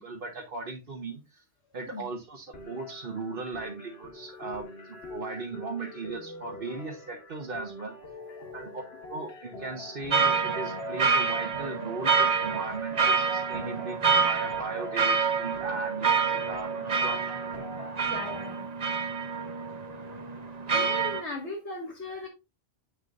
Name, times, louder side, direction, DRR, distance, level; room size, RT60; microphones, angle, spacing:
voice 1, 0.0-1.4 1.7-7.9 8.5-8.8 9.1-17.3, right 3 dB, 55° right, 0 dB, 1.3 m, -37 dB
sound 1, 2.5-18.5, left 2 dB, 60° left, 1.5 m, -44 dB
sound 2, 10.1-21.2, right 5 dB, 40° right, 0.9 m, -27 dB
voice 2, 18.0-18.7 20.7-22.3, left 2 dB, 80° left, -4 dB, 2.5 m, -38 dB
8.3 x 6.5 x 2.6 m, 0.25 s
omnidirectional pair, 1.2 m